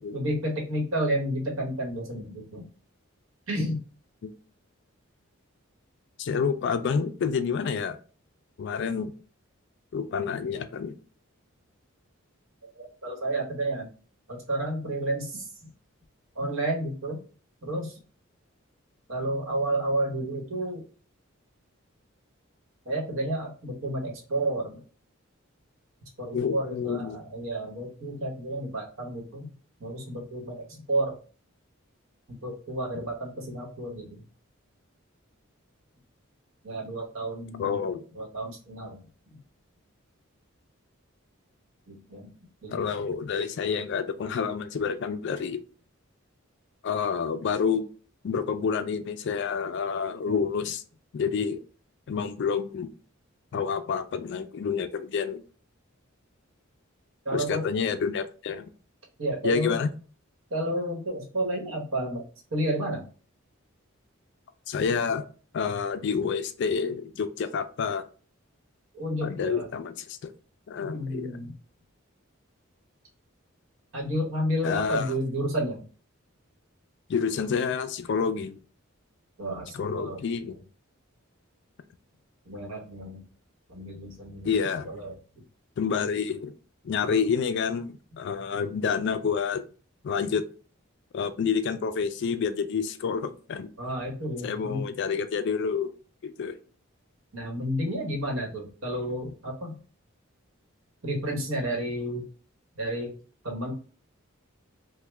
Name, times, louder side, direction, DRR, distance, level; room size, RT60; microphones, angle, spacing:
voice 1, 0.1-2.6 3.5-3.8 12.8-13.9 14.3-15.5 16.3-17.2 17.6-17.9 19.1-20.8 22.8-24.8 26.2-29.5 29.8-30.6 30.9-31.1 32.4-34.1 36.6-37.8 38.1-39.0 41.9-42.3 42.6-42.8 50.3-50.4 57.2-57.6 59.2-59.8 60.5-62.2 62.5-63.0 68.9-69.7 70.8-71.5 73.9-75.8 79.4-80.5 82.4-83.2 83.7-84.5 84.8-85.1 87.0-87.2 93.8-94.8 97.3-99.8 101.0-102.2 102.8-103.1 103.4-103.7, right 1 dB, 70° right, 0 dB, 1.1 m, -31 dB
voice 2, 6.2-8.0 8.6-9.1 9.9-11.0 26.3-27.2 37.6-38.0 42.7-45.6 46.8-47.9 48.2-50.8 51.1-51.6 52.1-52.9 53.5-55.4 57.3-58.7 59.4-59.9 64.7-65.2 65.5-68.0 69.2-70.3 70.7-71.3 74.6-75.1 77.1-78.6 79.7-80.6 84.4-84.9 85.8-86.5 86.8-89.6 90.0-90.4 91.1-93.7 94.4-95.9 96.2-96.6, left 6 dB, 55° left, 10 dB, 0.3 m, -28 dB
3.1 x 2.1 x 3.3 m, 0.38 s
head